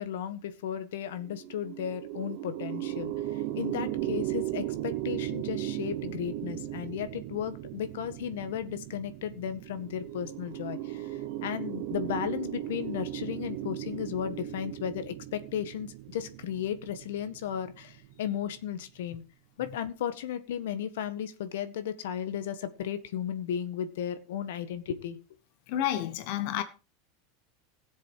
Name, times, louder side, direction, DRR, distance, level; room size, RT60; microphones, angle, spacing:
voice 1, 0.0-11.1 11.4-19.2 19.6-25.2, left 9 dB, 80° left, 1.6 m, -35 dB
sound 1, 1.1-18.6, right 14 dB, 50° right, 1.2 m, -37 dB
voice 2, 25.7-26.6, left 12 dB, 45° left, 1.2 m, -30 dB
17.0 x 7.5 x 4.7 m
supercardioid pair, 175°, 0 cm